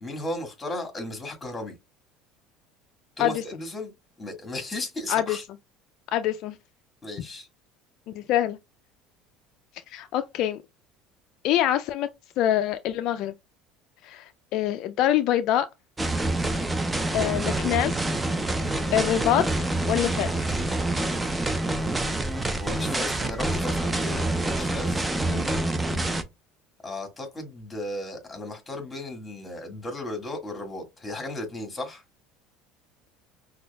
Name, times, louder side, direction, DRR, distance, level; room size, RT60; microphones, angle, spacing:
voice 1, 0.0-1.7 3.2-3.9 4.2-5.4 7.0-7.5 22.5-25.1 26.8-32.0, left 1 dB, 20° left, 1.7 m, -35 dB
voice 2, 6.1-6.6 8.1-8.6 9.9-10.6 11.4-12.1 12.4-13.3 14.0-15.7 17.1-18.0 18.9-20.5 25.3-25.5 25.9-26.1, left 11 dB, 65° left, 0.3 m, -25 dB
sound 1, 16.0-26.2, right 2 dB, 15° right, 0.6 m, -27 dB
5.7 x 2.3 x 2.2 m
supercardioid pair, 90°, 0 cm